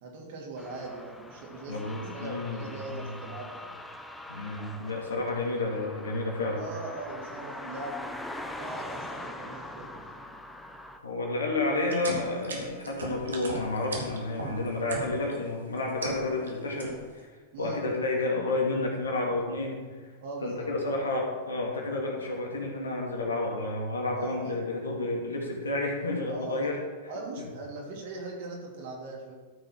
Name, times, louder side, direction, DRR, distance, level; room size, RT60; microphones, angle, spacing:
voice 1, 0.0-1.8 2.1-3.7 6.6-8.2 8.5-10.2 17.5-18.0 20.2-20.8 24.2-24.6 26.3-26.7 27.1-29.3, right 2 dB, 55° right, -1 dB, 2.9 m, -40 dB
sound 1, 0.6-11.0, left 1 dB, 5° left, 0.9 m, -42 dB
voice 2, 1.7-3.2 4.3-6.6 11.0-17.3 17.6-19.8 20.4-26.8, left 2 dB, 75° left, -1 dB, 2.2 m, -30 dB
sound 2, 11.8-15.4 15.8-16.5 16.8-17.2, right 3 dB, 70° right, 1.9 m, -37 dB
13.5 x 6.6 x 4.7 m, 1.4 s
figure-of-eight pair, 95°, 0 cm